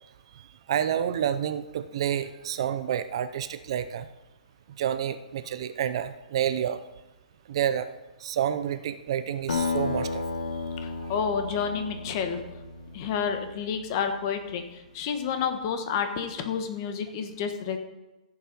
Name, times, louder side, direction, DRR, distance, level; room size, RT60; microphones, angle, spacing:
voice 1, 0.7-4.1 4.8-6.8 7.5-7.9 8.2-10.2, right 9 dB, 40° right, 13 dB, 0.5 m, -29 dB
Acoustic guitar, 9.5-14.3, left 4 dB, 80° left, 1.7 m, -33 dB
voice 2, 10.8-12.4 12.9-17.8, left 6 dB, 30° left, 7 dB, 1.2 m, -30 dB
15.0 x 7.1 x 5.3 m, 1.0 s
hypercardioid pair, 170°, 4 cm